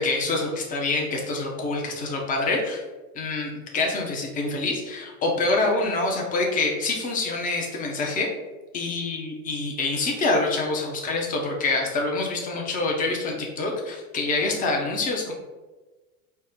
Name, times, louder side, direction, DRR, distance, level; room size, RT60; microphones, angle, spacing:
voice 1, 0.0-2.8 3.1-8.3 8.7-15.3, left 3 dB, 20° left, 0 dB, 0.6 m, -26 dB
4.2 x 2.0 x 3.4 m, 1.2 s
hypercardioid pair, 90°, 45 cm